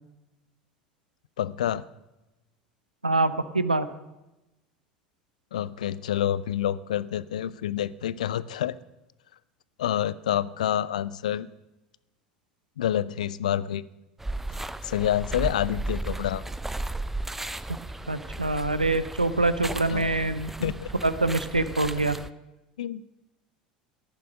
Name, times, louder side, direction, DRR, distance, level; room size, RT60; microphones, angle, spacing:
voice 1, 1.4-1.8 5.5-8.8 9.8-11.5 12.8-13.8 14.8-16.4 19.9-20.3 20.6-20.9 22.8-23.0, left 11 dB, 70° left, 19 dB, 0.5 m, -28 dB
voice 2, 3.0-3.9 18.1-20.7 21.0-22.2, right 2 dB, 90° right, 14 dB, 0.7 m, -25 dB
saturday walk in the park, 14.2-22.3, right 2 dB, 5° right, 0.6 m, -35 dB
13.5 x 11.0 x 6.3 m, 0.99 s
figure-of-eight pair, 70°, 4 cm